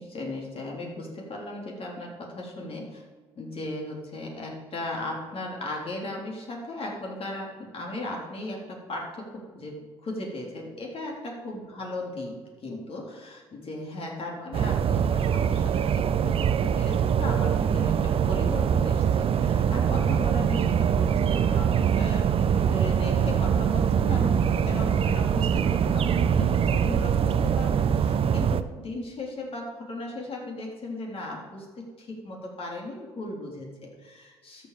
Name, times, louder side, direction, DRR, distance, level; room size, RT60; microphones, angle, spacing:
voice 1, 0.0-3.0 3.4-34.7, left 1 dB, 45° left, -1 dB, 3.6 m, -37 dB
sound 1, 14.5-28.6, right 8 dB, 45° right, 0.7 m, -23 dB
13.0 x 7.2 x 5.0 m, 1.4 s
hypercardioid pair, 55°, 14 cm